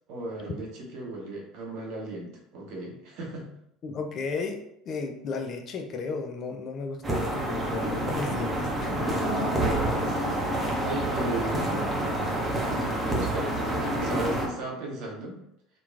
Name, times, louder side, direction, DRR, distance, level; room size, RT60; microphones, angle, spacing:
voice 1, 0.1-3.5 9.9-12.0 13.1-13.6 14.0-15.4, right 2 dB, 60° right, -2 dB, 0.7 m, -36 dB
voice 2, 3.8-9.1, left 4 dB, 45° left, 5 dB, 0.4 m, -34 dB
sound 1, 7.0-14.5, right 1 dB, 20° right, 0.8 m, -28 dB
2.9 x 2.2 x 2.4 m, 0.76 s
hypercardioid pair, 65°, 0 cm